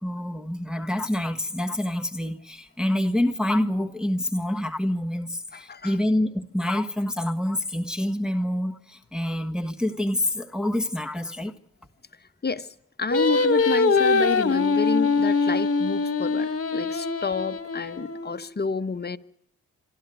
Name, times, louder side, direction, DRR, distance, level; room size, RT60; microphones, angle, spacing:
voice 1, 0.0-11.6, left 1 dB, ahead, 1.5 m, -27 dB
voice 2, 5.5-6.0 12.4-12.7 13.0-19.2, left 4 dB, 30° left, 1.1 m, -29 dB
Singing, 13.1-18.4, left 4 dB, 45° left, 1.7 m, -23 dB
26.5 x 13.0 x 9.3 m
supercardioid pair, 50°, 32 cm